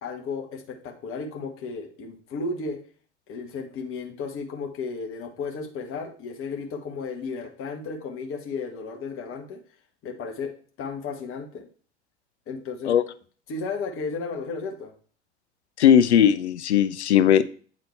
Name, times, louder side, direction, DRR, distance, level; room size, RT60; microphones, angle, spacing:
voice 1, 0.0-2.8 3.3-9.6 10.0-10.5 10.8-11.7 12.5-12.9 13.5-14.9, left 4 dB, 40° left, 3 dB, 1.4 m, -34 dB
voice 2, 15.8-17.4, left 9 dB, 80° left, 13 dB, 0.5 m, -18 dB
8.5 x 4.0 x 3.2 m, 0.43 s
figure-of-eight pair, 75°, 33 cm